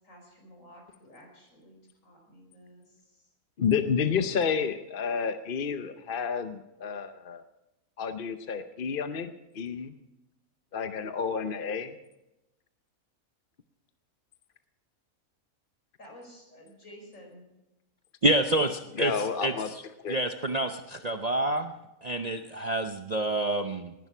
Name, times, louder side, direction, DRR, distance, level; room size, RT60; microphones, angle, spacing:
voice 1, 0.0-3.2 16.0-17.5 18.8-19.6, equal, 65° left, 1 dB, 5.2 m, -52 dB
voice 2, 3.6-7.4 8.0-9.9 10.7-11.9 18.9-19.7 20.0-20.2, left 6 dB, 45° left, 9 dB, 0.8 m, -30 dB
voice 3, 18.2-19.1 19.4-19.5 20.1-21.7 22.0-23.9, right 1 dB, 40° right, 7 dB, 0.6 m, -27 dB
19.5 x 11.0 x 6.0 m, 0.96 s
omnidirectional pair, 1.5 m